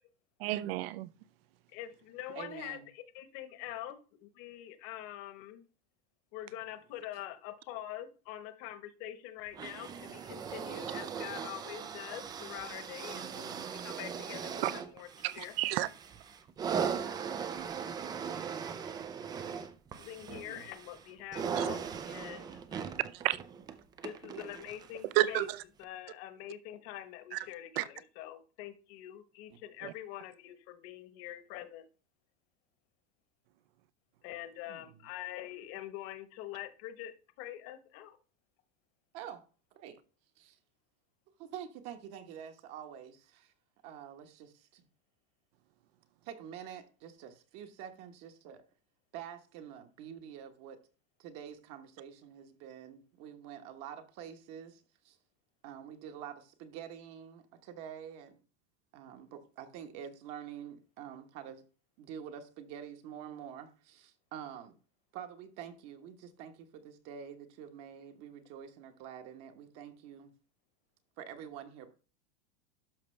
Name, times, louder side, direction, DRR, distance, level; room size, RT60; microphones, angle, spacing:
voice 1, 0.4-1.1 14.6-14.7 15.2-15.9 21.6-21.7 23.1-23.4 25.0-25.6 27.3-27.5 27.8-27.9 29.8-29.9, right 16 dB, 60° right, 0.7 m, -31 dB
voice 2, 1.7-2.8 3.1-5.7 6.3-15.1 15.3-15.5 20.0-21.8 22.0-23.0 24.0-25.5 25.8-31.8 34.2-38.2, left 13 dB, 45° left, 1.2 m, -45 dB
voice 3, 2.3-2.9 13.1-13.6 20.4-20.7 29.5-29.6 34.7-35.0 39.1-39.4 39.7-40.0 40.4-40.6 41.4-43.5 43.8-44.9 46.2-48.6 49.1-50.8 51.2-55.2 55.6-58.4 58.9-61.6 62.0-64.7 65.1-70.3 71.2-72.0, right 9 dB, 45° right, 1.2 m, -47 dB
sound 1, 9.5-25.0 25.8-25.9, right 7 dB, 15° right, 0.3 m, -39 dB
12.0 x 5.8 x 3.3 m
supercardioid pair, 150°, 34 cm